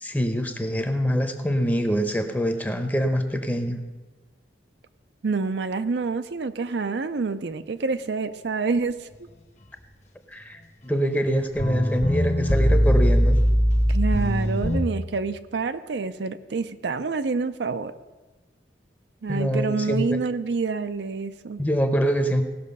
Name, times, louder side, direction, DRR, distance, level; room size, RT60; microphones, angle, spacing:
voice 1, 0.0-3.8 10.3-13.4 19.3-20.2 21.6-22.4, equal, 10° left, 7 dB, 0.8 m, -25 dB
voice 2, 5.2-9.3 13.9-17.9 19.2-21.6, right 4 dB, 75° right, 10 dB, 0.5 m, -27 dB
sound 1, 11.3-11.4 11.6-14.8, equal, 40° left, 1.2 m, -20 dB
17.5 x 6.3 x 5.4 m, 1.2 s
head